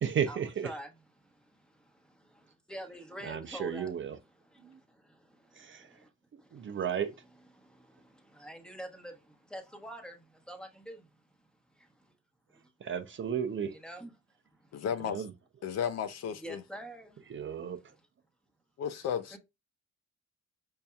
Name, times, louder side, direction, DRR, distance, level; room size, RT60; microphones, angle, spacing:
voice 1, 0.0-0.7 3.2-4.2 4.6-4.8 5.5-5.9 6.5-7.1 12.8-13.8 15.0-15.3 17.3-17.9, right 8 dB, 40° right, 0.6 m, -34 dB
voice 2, 1.2-3.9 4.5-6.1 6.4-6.8 7.5-11.1 11.8-12.1 12.5-12.7 13.8-14.1 14.5-14.6 16.4-17.3 19.3-19.4, right 1 dB, 5° left, 1.0 m, -47 dB
voice 3, 14.7-15.2 15.6-16.6 18.8-19.4, left 8 dB, 60° left, 0.5 m, -34 dB
5.5 x 2.6 x 2.3 m
cardioid pair, 90°, 30 cm